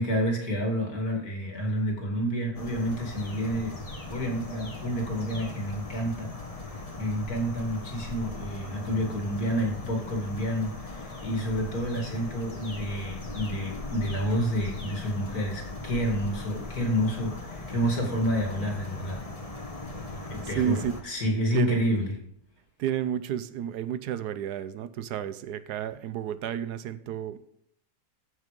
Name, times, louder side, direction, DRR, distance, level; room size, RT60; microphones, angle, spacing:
voice 1, 0.0-3.8 4.0-6.3 6.7-19.2 20.3-22.1, equal, 65° left, 2 dB, 3.1 m, -29 dB
sound 1, 2.5-21.0, left 2 dB, 25° left, 1.4 m, -39 dB
voice 2, 20.4-21.0 21.5-21.9 22.8-27.5, right 9 dB, 90° right, 14 dB, 1.3 m, -31 dB
14.5 x 6.4 x 5.2 m, 0.69 s
omnidirectional pair, 1.7 m